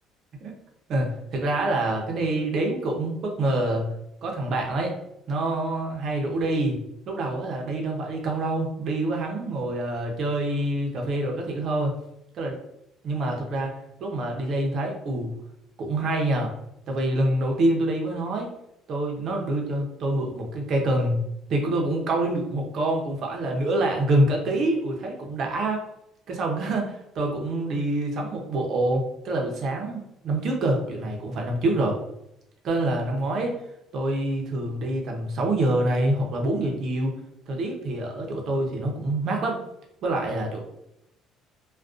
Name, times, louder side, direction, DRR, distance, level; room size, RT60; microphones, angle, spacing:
voice 1, 0.9-3.9 4.2-4.9 5.3-6.8 7.1-11.9 12.3-12.6 13.0-13.7 14.0-15.3 15.8-16.5 16.9-18.5 18.9-21.2 21.5-25.8 26.3-32.0 32.6-33.5 33.9-37.2 37.5-39.6 40.0-40.6, right 1 dB, 40° right, 1 dB, 0.5 m, -26 dB
2.4 x 2.1 x 2.4 m, 0.81 s
cardioid pair, 175°, 0 cm